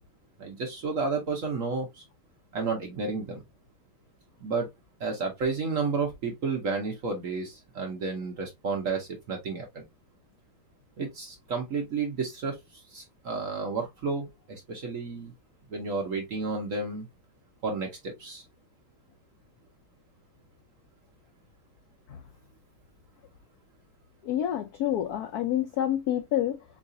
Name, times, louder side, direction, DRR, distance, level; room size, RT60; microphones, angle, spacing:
voice 1, 0.4-2.0 2.5-3.4 4.4-4.7 5.0-9.8 11.0-15.3 15.7-17.1 17.6-18.4, right 4 dB, 55° right, 0.9 m, -31 dB
voice 2, 24.2-26.6, left 11 dB, 75° left, 0.8 m, -28 dB
4.7 x 2.4 x 2.6 m
omnidirectional pair, 2.2 m